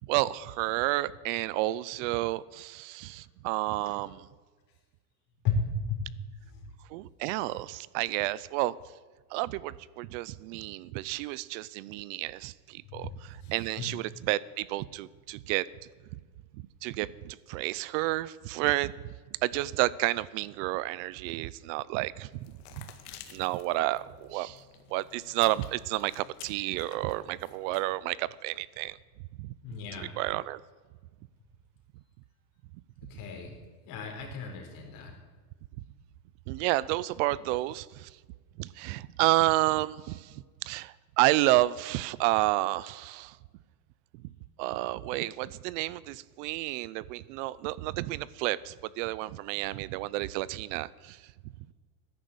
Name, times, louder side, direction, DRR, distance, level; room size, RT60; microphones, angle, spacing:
voice 1, 0.0-4.3 6.9-8.7 9.3-15.7 16.8-19.1 19.4-22.9 23.3-24.6 24.9-29.0 29.4-30.6 36.5-38.1 38.6-43.4 44.6-51.2, right 17 dB, 50° right, 0.6 m, -30 dB
voice 2, 5.4-6.0 12.8-13.1 13.4-13.9 29.6-30.1 33.1-33.6 33.9-35.1, left 4 dB, 40° left, 4.3 m, -34 dB
sound 1, 22.3-28.0, left 11 dB, 65° left, 1.9 m, -52 dB
14.5 x 10.5 x 7.9 m
supercardioid pair, 140°, 49 cm